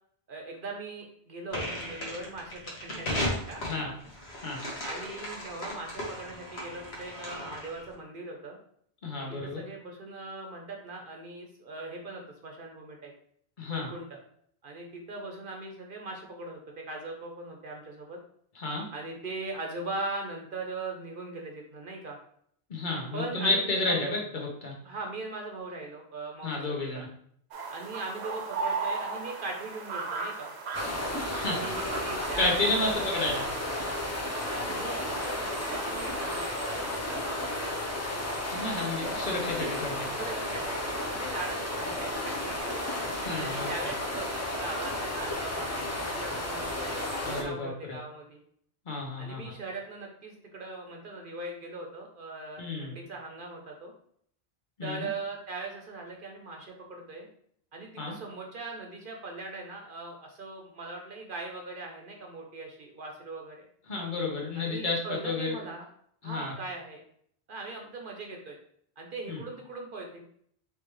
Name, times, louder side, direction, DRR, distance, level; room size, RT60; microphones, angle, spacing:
voice 1, 0.3-3.6 4.4-8.6 9.2-13.1 13.7-14.2 14.6-16.6 16.8-18.2 18.9-22.2 23.1-23.6 23.8-24.2 24.8-27.0 27.7-30.5 31.5-33.0 34.4-38.4 40.1-42.9 43.4-48.4 49.2-53.9 54.8-57.3 57.7-63.6 64.6-65.8 66.2-67.0 67.5-68.6 69.0-70.2, right 2 dB, 60° right, 1 dB, 0.9 m, -40 dB
sound 1, 1.5-7.9, equal, 85° left, 1.5 m, -36 dB
voice 2, 9.0-9.6 13.6-13.9 18.5-18.9 22.7-24.7 26.4-27.1 31.2-31.6 32.4-33.5 38.5-40.1 43.1-43.7 47.2-48.0 48.8-49.4 52.6-53.0 54.8-55.1 58.0-58.1 63.9-65.6 66.2-66.5 69.3-69.4, left 2 dB, 50° left, -1 dB, 1.2 m, -31 dB
sound 2, 27.5-36.8, right 4 dB, 85° right, 1.0 m, -37 dB
sound 3, 30.7-47.4, left 1 dB, 20° left, 0.6 m, -33 dB
4.7 x 3.2 x 3.1 m, 0.65 s
omnidirectional pair, 1.1 m